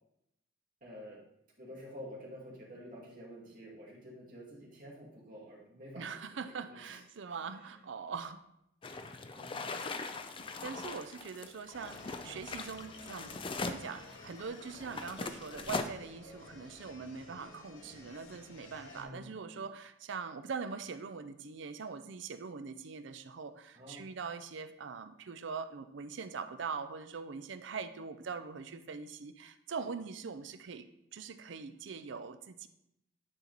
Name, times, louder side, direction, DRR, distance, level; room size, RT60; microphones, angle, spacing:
voice 1, 0.8-1.2 1.6-7.0 7.3-7.4 9.3-9.8 18.9-19.3 23.7-24.0, equal, 45° right, -4 dB, 2.3 m, -49 dB
voice 2, 6.0-8.4 10.3-30.8 31.1-32.7, right 5 dB, 70° right, 10 dB, 0.5 m, -42 dB
sound 1, 8.8-15.8, left 4 dB, 25° left, 0.4 m, -41 dB
sound 2, 11.7-19.0, left 2 dB, 85° left, 1.7 m, -53 dB
9.8 x 4.4 x 4.0 m, 0.80 s
head